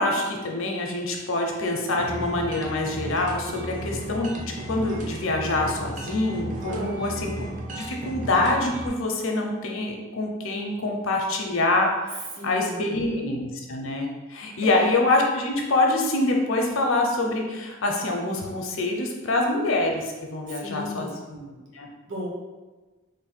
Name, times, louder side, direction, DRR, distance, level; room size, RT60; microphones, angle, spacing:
voice 1, 0.0-7.3 7.8-21.1 21.8-21.9, left 2 dB, 75° left, 1 dB, 0.6 m, -25 dB
sound 1, 2.0-8.9, right 1 dB, 35° right, 0.5 m, -35 dB
voice 2, 6.7-7.3 12.3-13.2 14.6-14.9 20.5-21.6 22.1-22.3, left 1 dB, 60° right, -3 dB, 0.8 m, -36 dB
3.2 x 2.2 x 4.2 m, 1.2 s
head